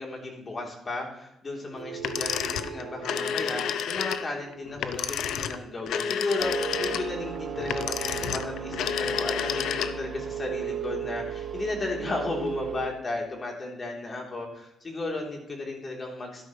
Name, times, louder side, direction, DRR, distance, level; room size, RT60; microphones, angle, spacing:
voice 1, 0.0-16.4, left 2 dB, 35° left, 0 dB, 3.3 m, -34 dB
sound 1, 1.7-6.5, right 7 dB, 85° right, 2.4 m, -45 dB
sound 2, 2.0-10.2, left 8 dB, 75° left, 0.6 m, -30 dB
sound 3, 6.4-12.9, right 8 dB, 35° right, 1.4 m, -35 dB
12.0 x 11.0 x 3.2 m, 0.84 s
cardioid pair, 90°, 0 cm